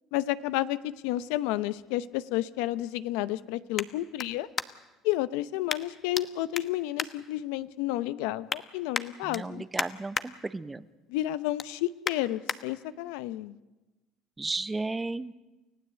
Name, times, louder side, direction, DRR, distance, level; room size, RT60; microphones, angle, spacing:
voice 1, 0.1-4.5 5.0-9.6 11.1-13.6, left 15 dB, 90° left, 15 dB, 0.8 m, -31 dB
sound 1, 0.9-5.0 5.7-6.3 6.5-7.8 8.2-8.6 8.9-10.3 10.7-11.0 11.3-12.6 13.1-13.2, left 6 dB, 35° left, 1.1 m, -36 dB
voice 2, 9.2-10.9 14.4-15.3, right 3 dB, 15° right, 15 dB, 0.8 m, -34 dB
29.5 x 15.5 x 8.2 m, 1.1 s
cardioid pair, 115°, 0 cm